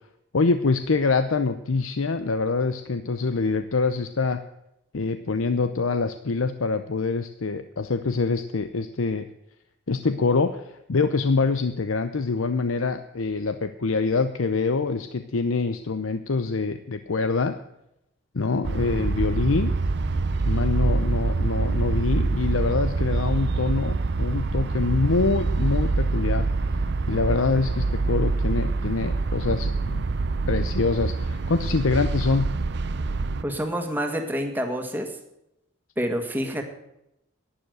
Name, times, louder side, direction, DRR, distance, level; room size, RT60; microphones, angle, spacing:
voice 1, 0.3-4.4 4.9-9.3 9.9-17.6 18.3-19.7 20.4-26.5 27.1-30.0 30.5-32.5, left 4 dB, 85° left, 10 dB, 0.7 m, -25 dB
sound 1, 18.6-33.4, right 3 dB, 55° right, 0.6 m, -25 dB
voice 2, 33.4-35.2 36.0-36.6, equal, 10° right, 4 dB, 1.8 m, -27 dB
11.5 x 10.0 x 7.9 m, 0.83 s
head